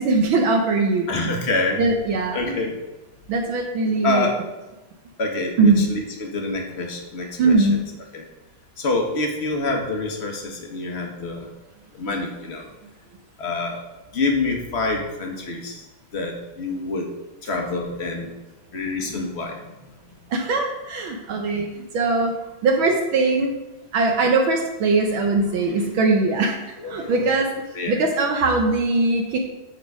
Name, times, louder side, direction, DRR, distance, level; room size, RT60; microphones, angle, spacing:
voice 1, 0.0-1.3 1.8-2.6 3.3-4.3 5.6-5.9 7.4-7.8 20.3-22.3 22.6-23.5 23.9-27.5 27.9-29.4, right 3 dB, 70° right, 2 dB, 1.6 m, -21 dB
voice 2, 1.1-1.8 2.3-2.8 4.0-4.4 5.2-7.7 8.1-8.3 8.8-11.5 11.9-12.6 13.4-13.8 14.1-15.9 16.1-17.1 17.4-18.3 18.7-19.7 26.8-27.3 27.7-28.0, left 3 dB, 35° left, 2 dB, 1.2 m, -26 dB
11.5 x 3.9 x 4.8 m, 1.1 s
omnidirectional pair, 2.4 m